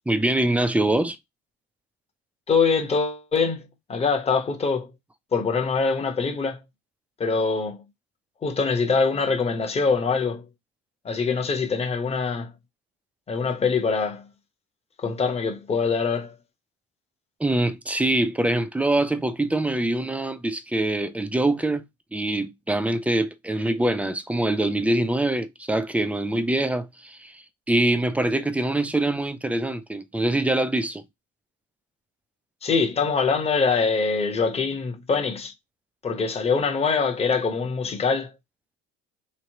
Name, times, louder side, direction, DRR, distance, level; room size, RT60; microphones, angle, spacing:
voice 1, 0.1-1.2 17.4-21.8 22.1-31.0, right 1 dB, 5° right, 0.4 m, -24 dB
voice 2, 2.5-3.6 3.9-4.9 5.3-6.6 7.2-7.8 8.4-10.4 11.0-12.5 13.3-14.3 15.0-16.4 32.6-35.5 36.0-38.3, left 4 dB, 20° left, 1.0 m, -24 dB
3.5 x 3.2 x 2.9 m
cardioid pair, 125°, 29 cm